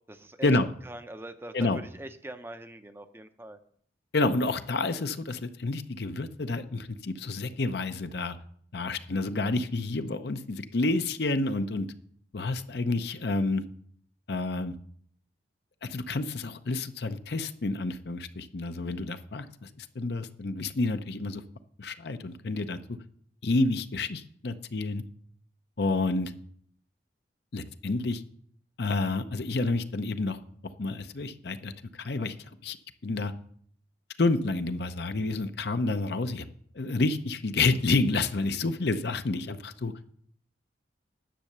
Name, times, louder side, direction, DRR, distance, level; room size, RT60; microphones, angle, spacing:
voice 1, 0.1-0.5 0.8-3.6, right 1 dB, 10° right, 8 dB, 0.6 m, -42 dB
voice 2, 4.1-8.4 8.7-11.9 12.3-13.6 14.3-14.7 15.8-21.4 21.8-23.0 23.4-25.0 25.8-26.3 27.5-28.2 28.8-30.4 30.8-32.8 33.0-33.3 34.2-36.5 36.7-39.9, left 3 dB, 60° left, 10 dB, 0.7 m, -29 dB
10.0 x 6.8 x 6.7 m, 0.62 s
head